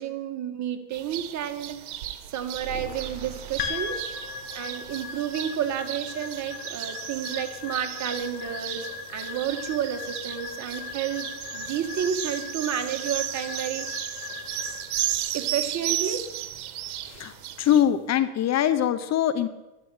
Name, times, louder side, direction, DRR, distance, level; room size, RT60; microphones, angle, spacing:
voice 1, 0.0-1.8 2.3-4.0 4.5-13.9 15.3-16.2, right 9 dB, 40° right, 6 dB, 2.1 m, -31 dB
sound 1, 0.9-17.8, right 12 dB, 70° right, 1.6 m, -35 dB
sound 2, 2.6-4.7, right 6 dB, 10° right, 4.8 m, -41 dB
sound 3, 3.6-18.0, left 6 dB, 85° left, 2.6 m, -39 dB
voice 2, 17.1-19.5, left 10 dB, 35° left, 13 dB, 0.9 m, -23 dB
12.5 x 10.5 x 8.9 m, 1.1 s
supercardioid pair, 105°, 45 cm